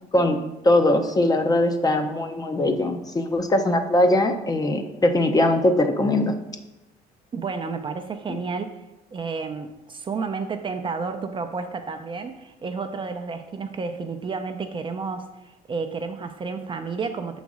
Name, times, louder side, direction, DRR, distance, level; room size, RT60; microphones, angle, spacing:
voice 1, 0.6-6.3, left 1 dB, 20° left, 7 dB, 0.6 m, -21 dB
voice 2, 7.3-8.8 9.1-17.4, right 4 dB, 30° right, 6 dB, 0.5 m, -31 dB
6.2 x 4.0 x 4.8 m, 0.96 s
cardioid pair, 110°, 17 cm